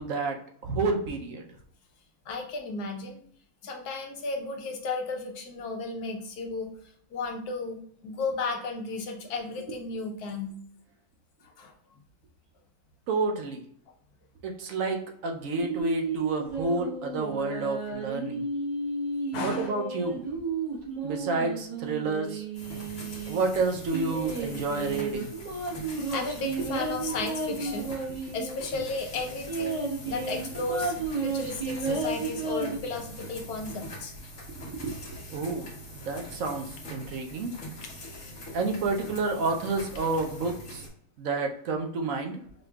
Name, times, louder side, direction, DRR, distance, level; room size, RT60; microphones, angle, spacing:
voice 1, 0.0-1.4 13.1-13.6 14.4-18.4 19.4-20.2 21.0-22.4 23.3-25.3 26.6-26.7 28.1-28.2 34.5-35.0 35.3-35.7 36.0-37.5 38.5-40.8 41.2-42.4, right 3 dB, 65° right, 3 dB, 1.0 m, -30 dB
voice 2, 2.3-3.2 3.6-6.7 7.1-10.5 11.6-11.7 19.3-19.7 25.5-27.9 28.3-34.1 38.2-38.3, left 3 dB, 85° left, 3 dB, 1.3 m, -34 dB
sound 1, 15.6-23.4 23.9-28.8 29.1-29.2 29.5-32.8, right 4 dB, 30° right, 1.3 m, -33 dB
sound 2, 22.5-40.9, equal, 60° left, 1.5 m, -43 dB
5.1 x 3.0 x 2.3 m, 0.63 s
omnidirectional pair, 1.6 m